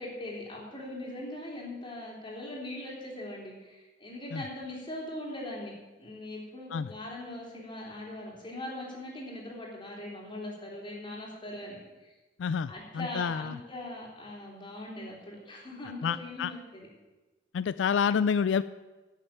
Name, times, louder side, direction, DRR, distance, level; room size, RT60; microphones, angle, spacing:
voice 1, 0.0-5.7 6.0-12.1 12.7-16.9, left 1 dB, 25° left, -3 dB, 3.5 m, -41 dB
voice 2, 12.4-13.6 16.0-16.5 17.5-18.6, left 6 dB, 85° left, 15 dB, 0.3 m, -28 dB
11.5 x 6.7 x 8.9 m, 1.2 s
head